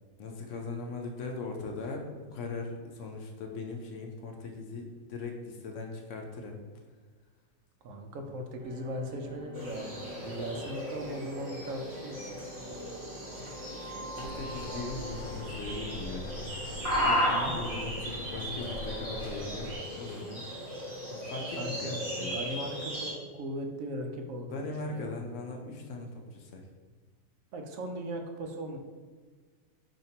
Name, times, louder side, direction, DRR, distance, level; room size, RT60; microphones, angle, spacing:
voice 1, 0.2-6.6 10.2-10.4 13.8-16.3 17.0-20.5 21.1-22.4 24.5-26.7, left 3 dB, 70° left, 2 dB, 0.8 m, -39 dB
voice 2, 7.8-12.3 17.4-17.5 20.9-21.0 21.5-23.1 23.3-25.2 27.5-28.8, equal, 75° right, 4 dB, 0.9 m, -38 dB
sound 1, 8.6-19.2, right 2 dB, 5° right, 1.2 m, -47 dB
sound 2, 9.5-23.1, equal, 35° right, 1.0 m, -35 dB
sound 3, 14.2-19.8, left 2 dB, 45° left, 0.4 m, -44 dB
5.3 x 2.8 x 2.7 m, 1.4 s
omnidirectional pair, 1.4 m